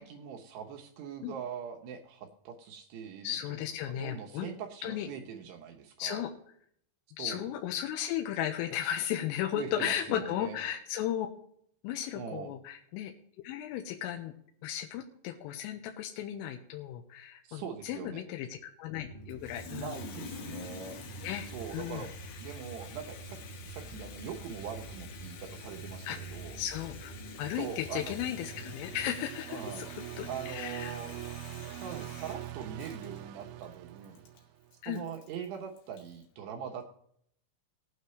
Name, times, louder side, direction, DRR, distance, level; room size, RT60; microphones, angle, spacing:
voice 1, 0.0-6.2 7.2-7.4 9.5-10.6 12.2-12.5 17.4-18.2 19.7-21.0 21.5-22.1 22.4-26.6 27.6-28.1 29.5-29.9 30.3-31.1 31.8-34.3 34.9-36.9, right 7 dB, 75° right, 2 dB, 2.6 m, -42 dB
voice 2, 3.2-4.5 4.8-5.1 6.0-6.3 7.1-11.3 11.8-13.1 13.4-14.3 14.6-19.9 21.2-22.1 26.1-31.0 34.8-35.0, left 11 dB, 85° left, 3 dB, 3.3 m, -35 dB
sound 1, 19.0-29.1, right 2 dB, 55° left, 0.4 m, -47 dB
Water tap faucet, 19.3-36.2, left 7 dB, 70° left, 2.5 m, -49 dB
sound 2, 27.4-34.8, right 14 dB, 90° right, 2.6 m, -44 dB
18.0 x 9.3 x 3.2 m, 0.66 s
omnidirectional pair, 6.0 m